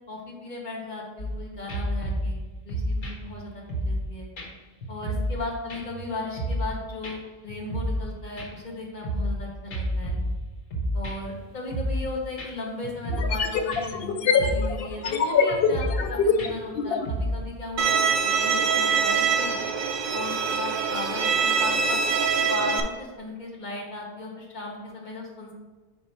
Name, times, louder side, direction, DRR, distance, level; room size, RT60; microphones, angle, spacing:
voice 1, 0.1-2.4 2.6-4.3 4.9-10.2 10.9-19.5 20.1-22.0 22.3-25.5, left 2 dB, 45° left, -2 dB, 1.3 m, -36 dB
sound 1, 1.2-1.4 1.7-4.1 4.4-4.5 4.8-5.4 5.7-6.7 7.0-7.1 7.5-8.1 8.4-9.4 9.7-11.4 11.7-12.1 12.4-12.5 12.8-13.4 13.7-14.0 14.4-14.8 15.0-15.2 15.5-16.1 16.4-17.4, equal, 85° left, 1.3 m, -30 dB
sound 2, 11.7-11.8 13.1-17.1, left 6 dB, 65° left, 0.7 m, -24 dB
Bowed string instrument, 17.8-22.8, right 6 dB, 60° right, 0.6 m, -24 dB
4.8 x 4.7 x 4.3 m, 1.2 s
omnidirectional pair, 1.2 m